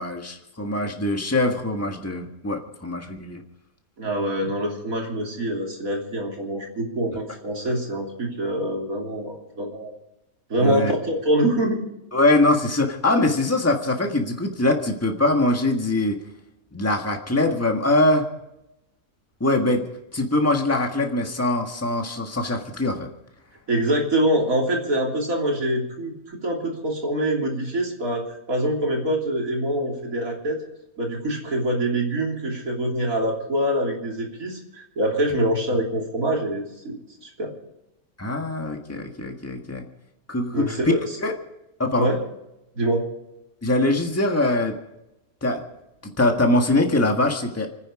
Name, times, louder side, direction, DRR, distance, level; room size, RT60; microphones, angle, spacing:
voice 1, 0.0-3.4 10.6-10.9 12.1-16.2 16.7-18.3 19.4-19.9 20.1-23.1 38.2-39.8 40.3-40.8 41.2-41.3 41.8-42.1 43.6-44.8 45.4-45.6 46.0-47.7, left 2 dB, 10° left, 3 dB, 1.6 m, -22 dB
voice 2, 4.0-9.9 10.5-11.8 23.7-30.6 31.0-37.5 40.5-41.2 42.0-42.2 42.7-43.1, right 1 dB, 70° right, -1 dB, 3.6 m, -25 dB
29.0 x 9.9 x 4.9 m, 0.91 s
omnidirectional pair, 1.5 m